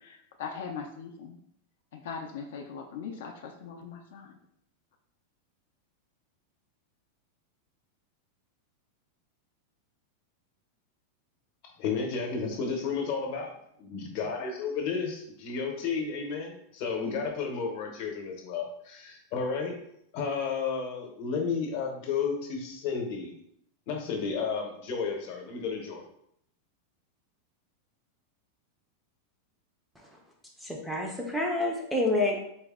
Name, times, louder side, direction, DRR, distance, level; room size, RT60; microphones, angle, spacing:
voice 1, 0.0-1.4 1.9-4.3, left 6 dB, 65° left, 3 dB, 0.4 m, -40 dB
voice 2, 11.8-13.5 13.8-19.7 20.1-23.4 23.9-26.0, left 5 dB, 40° left, 1 dB, 0.7 m, -32 dB
voice 3, 30.6-32.4, left 2 dB, ahead, -1 dB, 0.4 m, -28 dB
4.1 x 2.0 x 3.5 m, 0.71 s
supercardioid pair, 175°, 0 cm